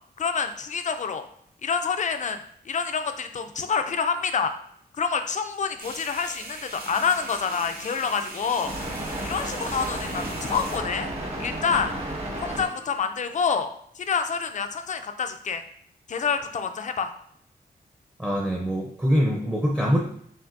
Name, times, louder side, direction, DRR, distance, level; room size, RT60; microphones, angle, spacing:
voice 1, 0.2-1.3 1.6-2.4 2.7-4.5 5.0-8.7 9.2-11.1 11.4-11.9 12.4-13.7 14.0-15.6 16.1-17.1, left 6 dB, 50° left, 7 dB, 0.4 m, -27 dB
sound 1, 5.8-10.8, right 2 dB, 65° right, 1.0 m, -40 dB
sound 2, 6.8-13.0, right 1 dB, 40° right, 1.0 m, -34 dB
voice 2, 18.2-20.0, equal, 10° right, -2 dB, 0.6 m, -23 dB
5.9 x 2.6 x 2.6 m, 0.67 s
wide cardioid pair, 130°, 17 cm